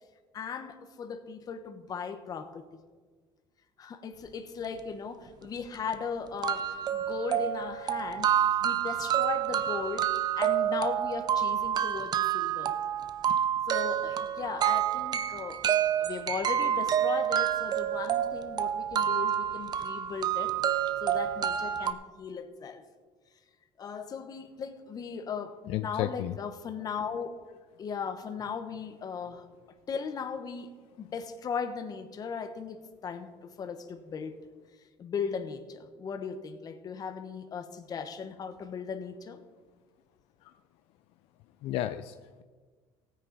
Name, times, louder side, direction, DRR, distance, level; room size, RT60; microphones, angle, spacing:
voice 1, 0.3-2.6 3.8-12.8 13.7-22.8 23.8-27.3 27.8-29.5 29.9-30.7 31.0-33.3 33.6-34.4 35.0-39.4, left 6 dB, 40° left, 8 dB, 1.2 m, -37 dB
sound 1, 5.4-5.5 5.9-6.0 6.4-21.9, right 10 dB, 45° right, 0.7 m, -28 dB
voice 2, 25.7-26.4 40.4-40.6 41.6-42.4, left 13 dB, 70° left, 10 dB, 0.5 m, -33 dB
16.5 x 9.4 x 4.1 m, 1.5 s
cardioid pair, 115°, 10 cm